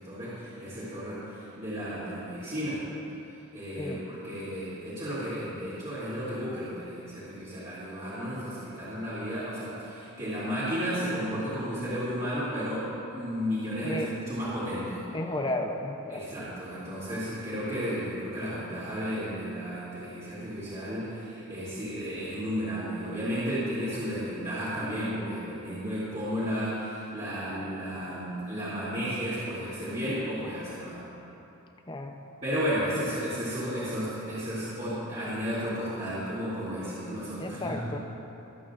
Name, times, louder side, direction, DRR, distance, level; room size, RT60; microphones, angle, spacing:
voice 1, 0.0-2.9 3.5-15.0 16.1-31.1 32.4-38.0, equal, 30° right, -12 dB, 2.7 m, -33 dB
voice 2, 15.1-16.2 31.9-32.1 37.4-38.0, left 1 dB, 20° left, 4 dB, 0.6 m, -33 dB
23.0 x 8.5 x 2.5 m, 3.0 s
head